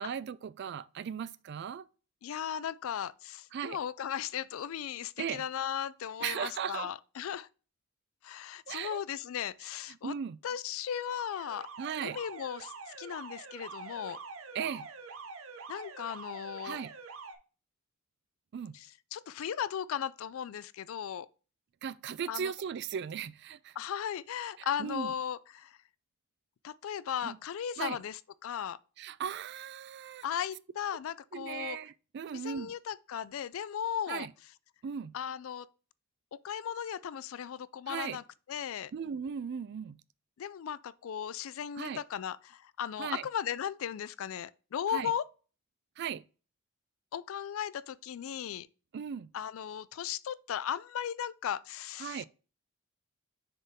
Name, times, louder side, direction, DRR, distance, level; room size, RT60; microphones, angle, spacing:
voice 1, 0.0-1.9 3.5-3.8 5.2-5.4 6.2-6.9 8.7-9.0 10.0-10.4 11.8-12.2 14.5-14.9 16.6-16.9 18.5-18.8 21.8-23.8 24.6-25.1 27.2-27.4 27.8-28.0 29.0-30.3 31.3-32.7 34.1-34.3 34.8-35.1 37.9-38.2 38.9-40.0 41.8-42.0 43.0-43.3 44.9-45.1 46.0-46.2 48.9-49.3 52.0-52.2, right 7 dB, 50° right, 0.3 m, -37 dB
voice 2, 2.2-7.5 8.2-10.1 10.4-11.7 12.0-14.2 15.7-16.8 18.7-18.9 19.1-21.3 22.3-22.5 23.8-25.8 26.6-28.8 30.2-31.8 32.3-34.3 35.1-35.7 36.4-38.2 38.5-38.9 40.4-45.2 47.1-48.7 49.3-52.2, left 9 dB, 65° left, 0.3 m, -36 dB
Alarm, 10.8-17.3, right 4 dB, 65° right, 0.8 m, -46 dB
6.7 x 3.7 x 4.1 m
head